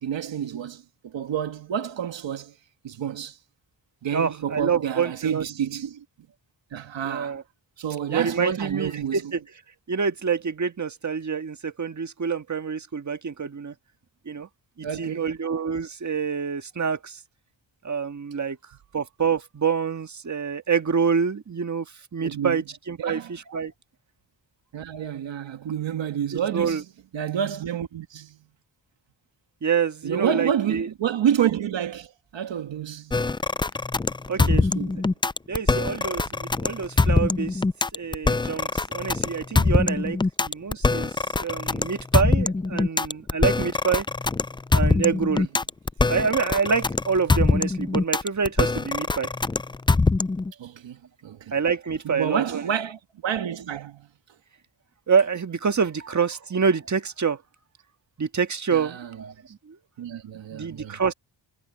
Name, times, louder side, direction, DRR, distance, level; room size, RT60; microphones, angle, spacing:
voice 1, 0.0-2.5 2.8-3.4 4.0-6.0 6.7-7.4 7.8-9.2 14.8-15.3 22.2-22.6 23.0-23.3 24.7-26.8 27.1-28.4 30.0-33.2 34.4-35.1 45.4-45.5 50.6-51.5 52.0-54.1 58.7-59.1 60.0-61.0, right 9 dB, 85° right, 1.7 m, -29 dB
voice 2, 4.1-5.4 7.0-7.4 8.1-9.4 9.9-13.7 14.2-14.5 14.8-17.2 17.8-18.6 18.9-21.9 22.1-23.7 26.5-26.8 29.6-30.9 34.3-34.6 35.5-37.6 37.9-44.0 44.7-45.4 46.1-49.3 51.5-52.6 55.1-57.4 58.2-59.3 59.7-59.8 60.5-61.1, right 6 dB, 40° right, 1.7 m, -26 dB
sound 1, 33.1-50.5, left 3 dB, 10° left, 0.3 m, -23 dB
cardioid pair, 75°, 43 cm